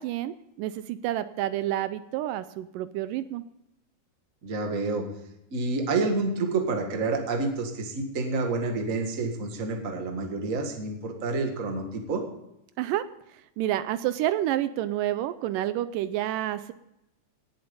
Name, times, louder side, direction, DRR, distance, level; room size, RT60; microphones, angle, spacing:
voice 1, 0.0-3.4 12.8-13.1 13.6-16.7, right 13 dB, 80° right, 13 dB, 2.2 m, -29 dB
voice 2, 4.4-5.1 5.5-12.2, right 3 dB, 30° right, 3 dB, 1.6 m, -28 dB
18.5 x 7.8 x 5.4 m, 0.86 s
omnidirectional pair, 3.9 m